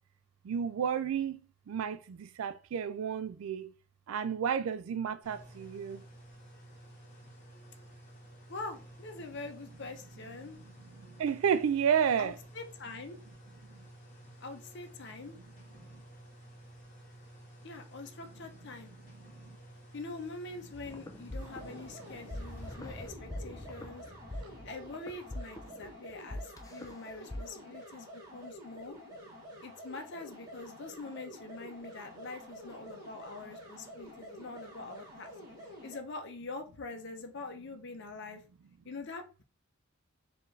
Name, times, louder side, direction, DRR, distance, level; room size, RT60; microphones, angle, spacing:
voice 1, 0.5-1.4 1.7-3.7 4.1-6.0 11.2-12.3, right 7 dB, 75° right, 0.3 m, -31 dB
sound 1, 5.2-22.7, right 1 dB, 35° left, 1.3 m, -53 dB
voice 2, 8.5-10.6 12.2-13.2 14.4-15.4 17.6-18.9 19.9-24.0 24.3-29.0 29.6-35.3 35.8-38.4 38.8-39.4, left 3 dB, 55° left, 0.7 m, -44 dB
sound 2, 20.9-27.4, left 1 dB, 15° left, 0.4 m, -43 dB
sound 3, 21.4-36.0, equal, 20° right, 1.3 m, -49 dB
4.4 x 2.6 x 3.2 m
head